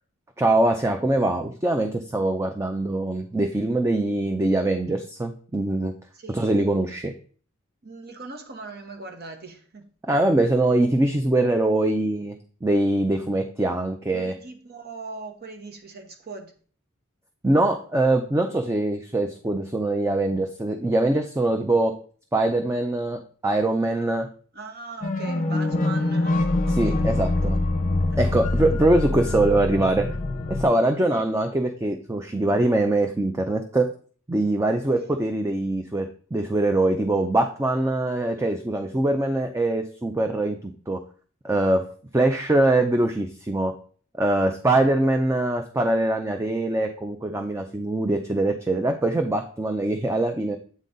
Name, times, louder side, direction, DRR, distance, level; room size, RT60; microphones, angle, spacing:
voice 1, 0.4-5.9 6.3-7.1 10.1-14.4 17.4-21.9 22.3-24.3 26.7-27.6 28.2-30.2 30.5-33.9 34.3-40.6 40.9-41.0 41.4-41.9 42.1-43.7 44.2-50.6, right 2 dB, 15° right, 0.4 m, -23 dB
voice 2, 6.1-6.6 7.8-9.9 14.1-16.5 24.0-24.3 24.5-27.5 28.1-28.2 31.0-31.4 35.0-35.2, right 3 dB, 50° right, 1.1 m, -40 dB
sound 1, 25.0-30.6, left 2 dB, 40° left, 0.7 m, -24 dB
8.3 x 3.9 x 3.9 m
head